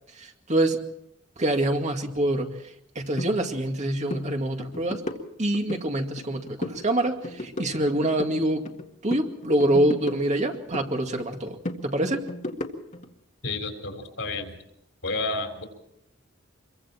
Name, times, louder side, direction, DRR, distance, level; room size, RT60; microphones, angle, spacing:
voice 1, 0.2-0.8 1.4-2.5 3.0-5.0 5.4-8.7 9.0-11.6 11.8-12.2, right 1 dB, 35° right, 4 dB, 2.2 m, -25 dB
sound 1, 3.2-3.3 3.7-3.8 4.1-4.3 4.6-5.8 6.2-6.8 7.1-8.8 9.1-10.9 11.2-13.1, left 1 dB, 40° left, 1.9 m, -35 dB
voice 2, 13.4-14.6 15.0-15.7, left 3 dB, 75° left, 5 dB, 3.9 m, -30 dB
26.0 x 23.0 x 4.5 m, 0.79 s
head